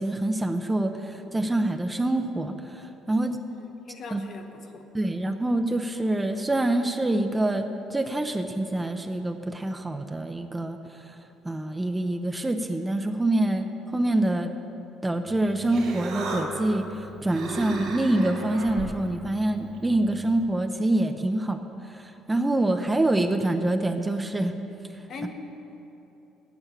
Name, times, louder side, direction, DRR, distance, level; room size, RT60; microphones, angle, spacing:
voice 1, 0.0-3.4 4.1-4.2 4.9-10.8 11.0-11.1 11.4-14.5 15.0-21.6 21.9-24.5 25.2-25.3, right 1 dB, 10° right, 6 dB, 0.5 m, -26 dB
voice 2, 3.5-4.8 25.1-25.3, left 4 dB, 50° left, 4 dB, 1.1 m, -41 dB
Human voice, 15.3-20.4, right 2 dB, 70° right, 2.4 m, -36 dB
8.6 x 8.1 x 8.3 m, 3.0 s
cardioid pair, 110°, 0 cm